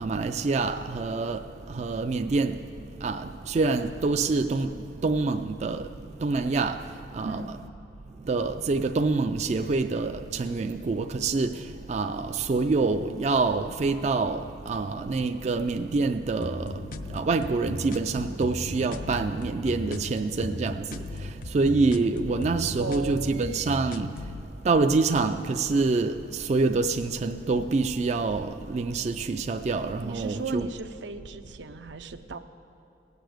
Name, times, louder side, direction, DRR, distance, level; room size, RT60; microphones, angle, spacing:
voice 1, 0.0-2.6 3.0-4.7 5.0-5.9 6.2-6.8 7.1-7.4 8.2-16.8 17.1-24.1 24.6-30.7, right 3 dB, 40° right, 0.3 m, -26 dB
sound 1, 16.4-24.4, left 2 dB, 50° left, 0.5 m, -37 dB
voice 2, 22.8-23.8 30.0-32.4, right 4 dB, 85° right, 0.6 m, -36 dB
17.5 x 6.8 x 7.8 m
head